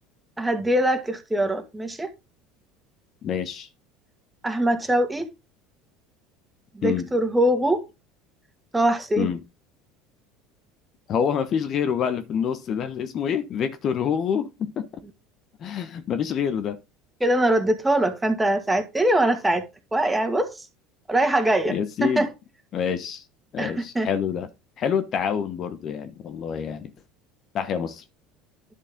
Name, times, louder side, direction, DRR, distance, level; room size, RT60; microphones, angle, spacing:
voice 1, 0.4-2.1 4.4-5.3 6.7-7.8 8.7-9.3 17.2-19.7 19.9-20.7 21.1-22.3 23.6-24.1, right 1 dB, 10° right, 2.0 m, -22 dB
voice 2, 3.2-3.7 6.8-7.1 9.2-9.4 11.1-14.9 15.6-16.8 21.7-22.2 22.7-23.2 23.5-24.5 24.8-26.9 27.5-28.0, left 8 dB, 45° left, 1.2 m, -27 dB
10.5 x 6.5 x 3.7 m
hypercardioid pair, 75°, 0 cm